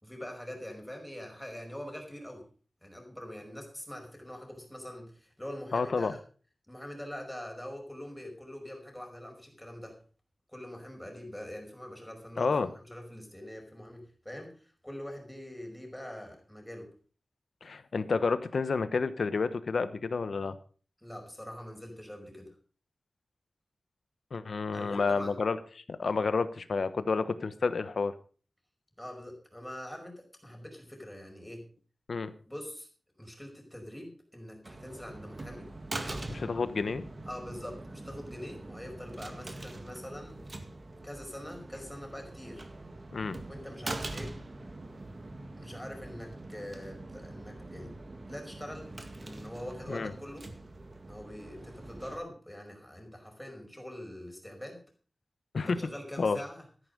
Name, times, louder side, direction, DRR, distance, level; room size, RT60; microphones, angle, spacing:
voice 1, 0.0-2.5 2.8-6.2 6.7-10.0 10.5-16.9 21.0-22.6 24.7-25.4 29.0-31.7 32.5-32.9 33.2-35.7 36.0-36.3 37.3-40.4 41.0-42.7 43.5-44.4 45.6-48.0 48.3-48.9 49.2-50.5 51.1-54.8 55.6-56.7, equal, 5° left, 2 dB, 5.2 m, -44 dB
voice 2, 5.7-6.1 12.4-12.7 17.6-20.6 24.3-25.6 25.9-28.1 32.1-32.3 36.3-37.1 43.1-43.4 49.9-50.1 55.5-55.8 56.2-56.4, left 4 dB, 75° left, 12 dB, 1.1 m, -30 dB
sound 1, 34.6-52.2, right 2 dB, 40° right, 1.9 m, -43 dB
13.0 x 11.0 x 5.3 m, 0.41 s
wide cardioid pair, 100°, 0 cm